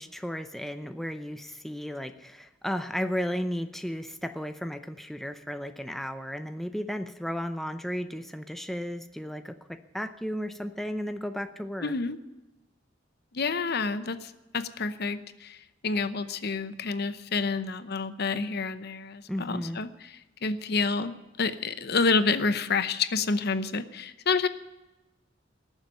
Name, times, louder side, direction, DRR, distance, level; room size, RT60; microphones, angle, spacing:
voice 1, 0.0-11.9 19.3-19.8, equal, ahead, 8 dB, 0.6 m, -34 dB
voice 2, 11.8-12.2 13.3-24.5, left 4 dB, 55° left, 12 dB, 0.8 m, -29 dB
18.5 x 7.3 x 9.1 m, 1.1 s
head